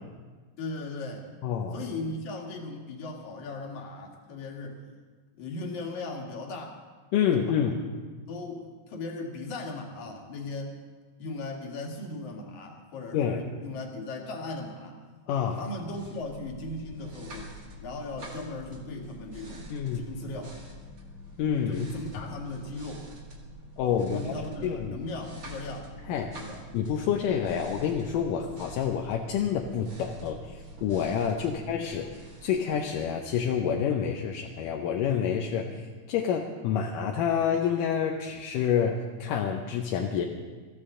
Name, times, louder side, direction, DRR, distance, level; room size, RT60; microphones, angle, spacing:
voice 1, 0.6-1.3 1.7-4.8 5.3-6.8 7.3-7.7 8.3-10.8 11.2-15.0 15.5-17.5 17.8-20.5 21.7-23.1 24.0-25.9 26.2-26.6 27.4-27.6 31.4-31.5, left 2 dB, 65° left, 1 dB, 3.1 m, -38 dB
voice 2, 1.4-1.8 7.1-7.8 13.1-13.4 15.3-15.6 19.7-20.1 21.4-21.8 23.8-24.3 24.6-25.0 26.1-26.3 26.7-32.1 32.4-35.8 36.1-40.3, left 8 dB, 80° left, 2 dB, 2.4 m, -28 dB
sound 1, 15.6-33.5, equal, 30° right, 1.9 m, -46 dB
22.5 x 14.5 x 3.8 m, 1.4 s
omnidirectional pair, 3.8 m